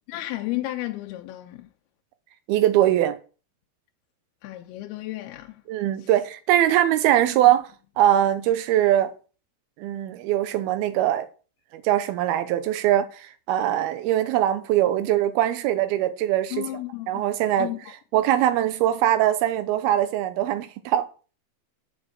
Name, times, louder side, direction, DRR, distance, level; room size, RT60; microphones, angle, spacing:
voice 1, 0.1-1.7 4.4-5.5 16.5-17.2 17.6-17.8, left 16 dB, 85° left, 2.6 m, -32 dB
voice 2, 2.5-3.2 5.7-7.7 8.0-9.1 9.8-11.3 11.7-16.7 17.1-17.7 18.1-21.1, right 12 dB, 85° right, 2.6 m, -22 dB
6.9 x 5.4 x 6.4 m
omnidirectional pair, 4.4 m